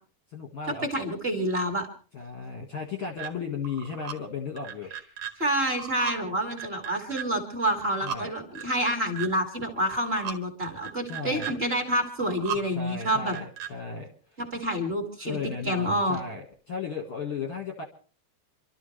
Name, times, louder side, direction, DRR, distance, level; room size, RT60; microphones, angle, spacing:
voice 1, 0.3-1.0 2.1-4.9 8.0-8.3 11.1-11.6 12.5-14.4 15.2-17.8, left 5 dB, 55° left, 2 dB, 1.6 m, -35 dB
voice 2, 0.9-1.9 5.4-13.3 14.4-15.4 15.6-16.2, equal, 20° right, 2 dB, 1.6 m, -28 dB
sound 1, 3.2-3.3 3.6-4.1 4.6-5.3 5.6-6.2 6.5-7.2 7.7-8.2 8.5-9.3 9.8-10.4 10.8-11.5 12.0-12.6 13.0-13.7, right 9 dB, 55° right, 2.1 m, -36 dB
27.5 x 13.0 x 3.3 m, 0.39 s
omnidirectional pair, 4.9 m